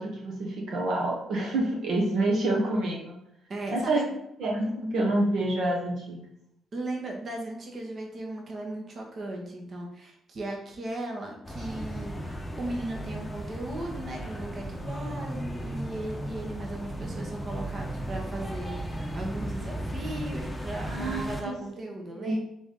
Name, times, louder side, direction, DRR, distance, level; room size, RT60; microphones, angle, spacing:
voice 1, 0.0-3.2 3.7-6.3 20.9-21.5 22.1-22.4, right 1 dB, 70° right, -2 dB, 1.0 m, -28 dB
voice 2, 3.5-4.0 6.7-22.4, right 1 dB, 45° right, 0 dB, 1.1 m, -37 dB
sound 1, 11.4-21.4, equal, 15° left, 0.7 m, -35 dB
3.9 x 3.4 x 3.8 m, 0.77 s
cardioid pair, 90°, 0 cm